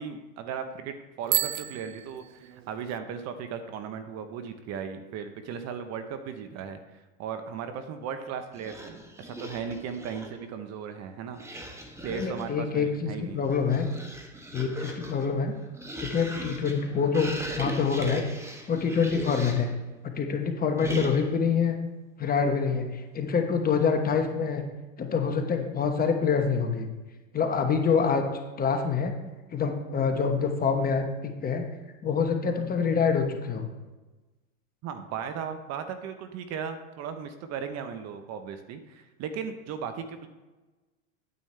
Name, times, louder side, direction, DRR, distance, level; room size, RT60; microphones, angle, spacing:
voice 1, 0.0-11.4 12.0-13.4 34.8-40.3, right 7 dB, 40° right, 9 dB, 0.9 m, -37 dB
Bicycle bell, 1.2-3.0, right 15 dB, 80° right, 0.5 m, -31 dB
sound 1, 8.5-10.5 11.3-12.6 13.3-19.8 20.8-21.5, right 1 dB, 5° right, 1.0 m, -39 dB
voice 2, 12.1-13.9 14.5-15.5 16.0-18.2 18.7-19.7 20.0-21.8 22.2-24.6 25.0-26.9 27.3-28.3 28.6-29.1 29.5-31.6 32.0-33.7, left 6 dB, 25° left, 4 dB, 1.1 m, -26 dB
9.2 x 8.4 x 3.3 m, 1.2 s
hypercardioid pair, 105°, 38 cm